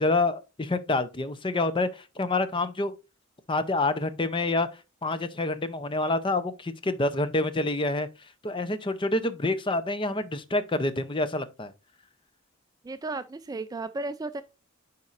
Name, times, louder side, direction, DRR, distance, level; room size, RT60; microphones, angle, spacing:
voice 1, 0.0-2.9 3.5-4.7 5.0-8.1 8.4-11.7, left 2 dB, 25° left, 0.6 m, -27 dB
voice 2, 12.8-14.4, right 3 dB, 20° right, 0.3 m, -34 dB
10.5 x 4.3 x 2.5 m
head